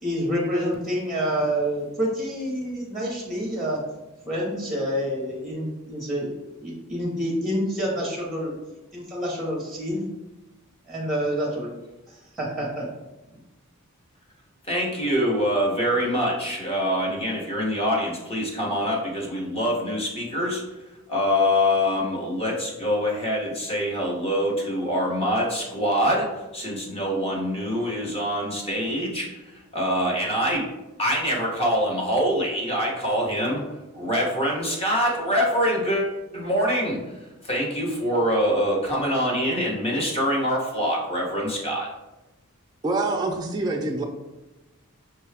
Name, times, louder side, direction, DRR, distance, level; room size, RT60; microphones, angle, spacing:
voice 1, 0.0-3.8 4.2-6.3 6.6-8.5 8.9-10.1 10.9-11.7 12.1-12.9, equal, ahead, -3 dB, 0.8 m, -27 dB
voice 2, 14.7-20.6 21.1-30.7 31.0-33.6 33.9-36.1 36.3-37.0 37.4-41.9, equal, 25° left, -2 dB, 0.9 m, -24 dB
voice 3, 42.8-44.0, right 2 dB, 20° right, 0 dB, 0.3 m, -25 dB
5.6 x 2.3 x 3.3 m, 1.0 s
head